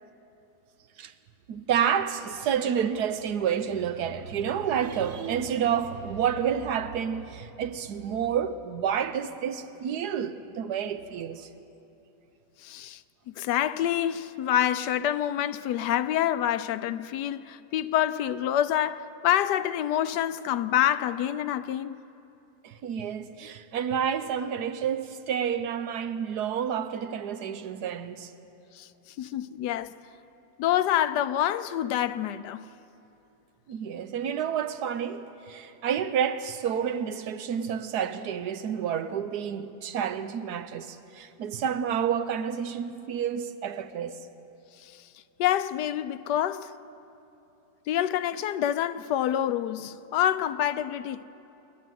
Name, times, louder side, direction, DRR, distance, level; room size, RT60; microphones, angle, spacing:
voice 1, 1.5-11.5 22.6-28.3 33.7-44.2, right 8 dB, 75° right, 1.3 m, -29 dB
voice 2, 12.6-13.0 13.3-22.0 28.7-28.9 29.2-29.9 30.6-32.7 44.8-45.1 45.4-46.7 47.9-51.2, left 11 dB, 80° left, 1.2 m, -27 dB
27.0 x 11.0 x 9.3 m
omnidirectional pair, 1.8 m